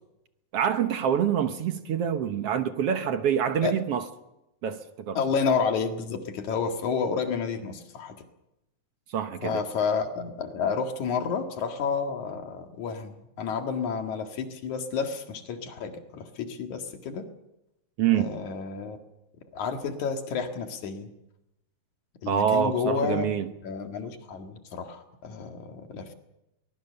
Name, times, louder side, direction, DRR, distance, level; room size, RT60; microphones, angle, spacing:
voice 1, 0.5-4.1 4.6-5.2 9.1-9.6 18.0-18.4 22.3-23.5, right 8 dB, 60° right, 8 dB, 1.9 m, -26 dB
voice 2, 5.1-8.2 9.4-17.2 18.1-19.0 19.5-21.1 22.2-23.3 23.6-26.1, left 6 dB, 75° left, 5 dB, 3.3 m, -30 dB
23.0 x 20.0 x 6.9 m, 0.91 s
omnidirectional pair, 3.4 m